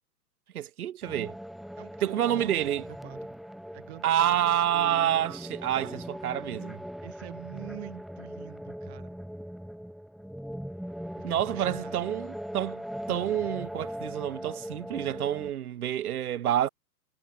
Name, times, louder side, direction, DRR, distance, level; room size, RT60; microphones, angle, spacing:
voice 1, 0.5-1.3 2.0-2.8 4.0-6.8 11.2-16.7, right 11 dB, 65° right, 1.1 m, -28 dB
sound 1, 1.0-15.5, equal, ahead, 1.6 m, -40 dB
voice 2, 1.8-3.2 3.7-4.6 7.0-9.2 11.2-12.2, right 19 dB, 40° right, 7.8 m, -46 dB
hypercardioid pair, 135°, 48 cm